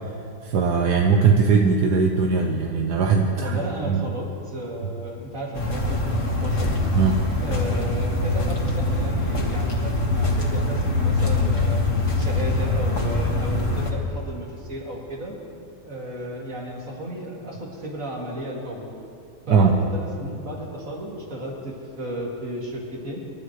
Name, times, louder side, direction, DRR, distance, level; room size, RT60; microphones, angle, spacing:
voice 1, 0.4-3.6 3.9-4.1 6.9-7.2 19.5-19.7, right 5 dB, 80° right, 2 dB, 1.5 m, -19 dB
voice 2, 3.3-6.7 7.4-11.8 12.2-15.4 15.8-19.0 19.5-23.2, right 1 dB, 55° right, -3 dB, 2.9 m, -33 dB
sound 1, 5.5-13.9, left 2 dB, 50° left, 2.0 m, -23 dB
28.0 x 12.0 x 3.2 m, 2.5 s
omnidirectional pair, 1.7 m